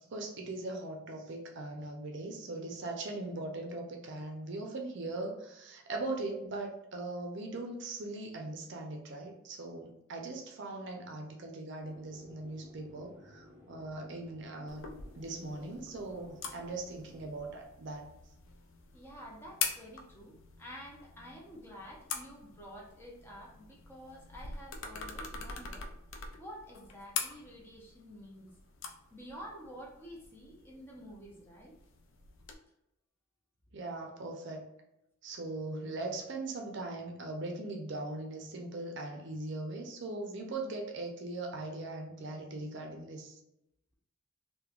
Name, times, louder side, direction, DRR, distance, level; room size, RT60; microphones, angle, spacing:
voice 1, 0.1-14.9 15.2-18.1 33.7-34.7 35.2-43.4, right 2 dB, 60° right, 2 dB, 0.5 m, -40 dB
sound 1, 11.8-17.2, left 1 dB, 10° right, 1.4 m, -56 dB
sound 2, 14.7-32.5, left 5 dB, 65° left, 0.4 m, -44 dB
voice 2, 18.9-25.9 26.4-28.5 29.1-31.7, equal, 10° left, -3 dB, 0.5 m, -49 dB
3.0 x 2.1 x 2.4 m, 0.85 s
head